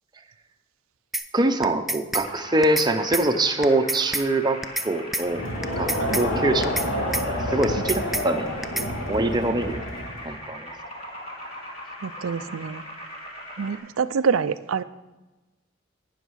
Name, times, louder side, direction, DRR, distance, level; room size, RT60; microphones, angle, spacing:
sound 1, 1.1-1.3 1.6-2.3 2.6-2.9 3.1-3.3 3.6-4.3 4.6-4.9 5.1-5.3 5.6-6.3 6.6-6.9 7.1-7.3 7.6-8.3 8.6-8.9, right 1 dB, ahead, 0.3 m, -27 dB
voice 1, 1.3-5.4 5.8-5.9 6.2-6.7 7.0-8.5 8.9-9.8 10.2-10.7, right 2 dB, 20° right, 5 dB, 0.7 m, -24 dB
sound 2, 2.2-13.8, left 1 dB, 30° left, 2.1 m, -40 dB
Crowd, 5.2-10.4, left 1 dB, 75° left, 2.7 m, -29 dB
voice 2, 12.0-12.8 13.6-14.8, right 6 dB, 90° right, 12 dB, 0.5 m, -26 dB
12.0 x 9.3 x 4.7 m, 1.1 s
head